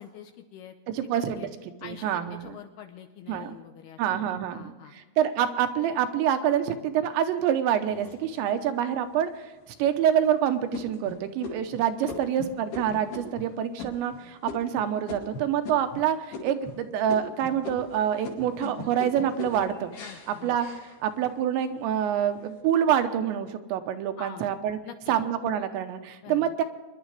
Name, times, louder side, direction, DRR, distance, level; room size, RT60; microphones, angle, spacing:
voice 1, 0.0-0.9 1.4-1.5 1.8-4.9 12.0-12.2 20.0-20.6 24.2-24.5 24.8-25.2 26.2-26.5, left 9 dB, 80° left, 6 dB, 2.5 m, -45 dB
voice 2, 0.9-1.5 1.8-2.6 3.3-3.5 4.0-4.7 5.2-9.3 9.8-14.1 14.5-16.2 16.4-19.9 20.3-20.7 21.0-24.8 25.1-26.6, right 9 dB, 80° right, 7 dB, 3.2 m, -26 dB
sound 1, 7.9-8.7 9.3-9.4 9.9-10.3 10.7-16.0 16.3-16.8 17.1-21.4 21.9-22.4, left 3 dB, 60° left, 4.0 m, -40 dB
25.0 x 11.5 x 3.3 m, 1.2 s
omnidirectional pair, 5.3 m